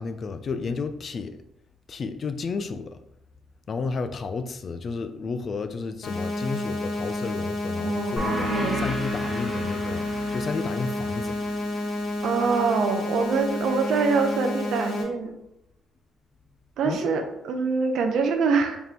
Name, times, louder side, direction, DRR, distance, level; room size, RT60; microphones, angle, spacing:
voice 1, 0.0-1.4 1.9-3.0 3.7-11.4 16.8-17.1, left 4 dB, 50° left, 0.3 m, -32 dB
sound 1, 6.0-15.0, left 1 dB, 75° left, 0.7 m, -30 dB
voice 2, 7.8-8.9 12.2-15.3 16.8-18.8, right 5 dB, 75° right, 0.5 m, -25 dB
sound 2, 8.2-13.3, equal, 30° left, 1.2 m, -34 dB
3.5 x 2.4 x 4.4 m
cardioid pair, 90°, 0 cm